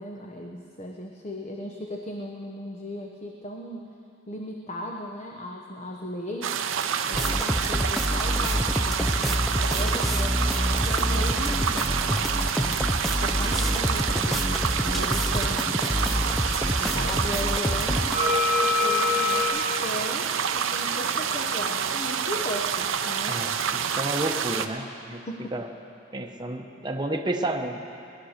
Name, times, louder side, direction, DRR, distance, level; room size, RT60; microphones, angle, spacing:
voice 1, 0.0-4.0 4.3-6.6 7.1-12.9 13.2-16.3 16.8-23.4 25.1-25.7, left 1 dB, 35° left, 1 dB, 0.9 m, -37 dB
sound 1, 6.4-24.7, right 7 dB, 85° right, 0.7 m, -28 dB
sound 2, 7.1-18.1, equal, ahead, 0.5 m, -27 dB
sound 3, 13.5-17.5 17.8-19.5, left 5 dB, 70° left, 4.4 m, -29 dB
voice 2, 23.3-25.2 25.5-25.7 26.1-27.8, right 1 dB, 20° right, 2 dB, 1.0 m, -31 dB
19.0 x 11.5 x 6.5 m, 2.7 s
head